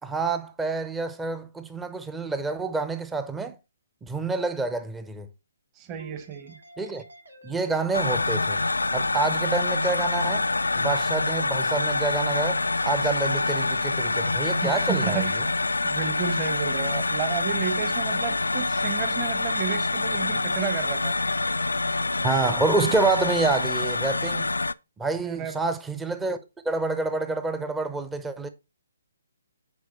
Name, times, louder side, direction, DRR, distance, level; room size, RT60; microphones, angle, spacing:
voice 1, 0.0-3.6 4.0-5.3 6.8-7.0 7.4-8.6 8.9-10.5 10.8-15.4 22.2-24.5 25.0-26.4 26.6-28.5, right 3 dB, 10° right, 0.7 m, -28 dB
voice 2, 5.8-6.6 14.6-15.3 15.8-21.2 25.2-25.5, right 8 dB, 25° right, 1.1 m, -32 dB
sound 1, 6.0-11.1, right 1 dB, 75° right, 2.4 m, -47 dB
sound 2, 7.9-24.7, left 3 dB, 80° left, 0.4 m, -26 dB
9.5 x 4.8 x 4.1 m
figure-of-eight pair, 135°, 0 cm